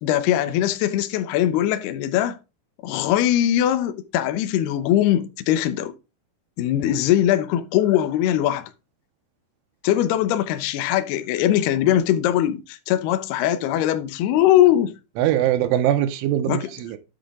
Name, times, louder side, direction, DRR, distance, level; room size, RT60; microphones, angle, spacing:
voice 1, 0.0-2.4 2.8-5.9 6.6-8.7 9.8-14.9 16.5-16.6, left 12 dB, 75° left, 2.6 m, -21 dB
voice 2, 15.2-17.0, right 12 dB, 85° right, 3.3 m, -22 dB
10.5 x 7.5 x 3.7 m
omnidirectional pair, 5.5 m